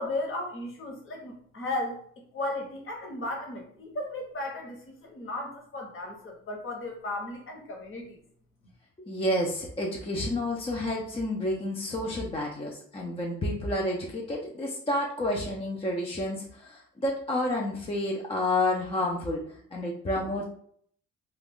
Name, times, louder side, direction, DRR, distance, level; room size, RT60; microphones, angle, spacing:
voice 1, 0.0-2.0 2.3-8.2, left 2 dB, 45° left, 1 dB, 1.0 m, -35 dB
voice 2, 9.1-19.4 19.7-20.4, left 1 dB, 20° left, -2 dB, 0.4 m, -30 dB
2.4 x 2.3 x 3.5 m, 0.62 s
cardioid pair, 90°, 30 cm